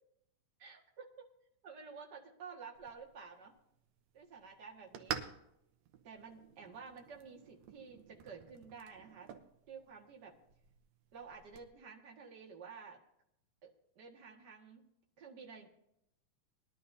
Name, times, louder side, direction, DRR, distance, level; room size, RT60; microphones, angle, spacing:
voice 1, 0.6-1.2 1.6-3.5 4.1-5.2 6.0-9.3 9.7-10.3 11.1-13.0 13.6-13.7 14.0-14.8 15.2-15.7, right 5 dB, 40° right, -1 dB, 1.8 m, -51 dB
sound 1, 2.7-11.7, right 8 dB, 70° right, 1.8 m, -49 dB
21.0 x 11.5 x 2.7 m, 0.78 s
omnidirectional pair, 3.9 m